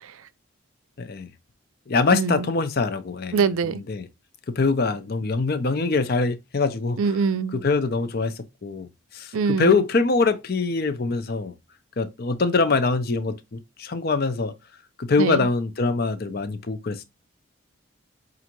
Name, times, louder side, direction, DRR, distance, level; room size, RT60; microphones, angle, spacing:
voice 1, 1.0-1.3 1.9-4.1 4.6-7.0 7.5-8.3 8.6-8.9 9.1-11.5 12.0-14.5 15.0-17.0, left 3 dB, 45° left, 0.5 m, -23 dB
voice 2, 2.1-2.5 3.3-3.8 7.0-7.6 9.3-9.8 15.2-15.5, right 5 dB, 80° right, 0.4 m, -23 dB
5.5 x 2.5 x 2.9 m
head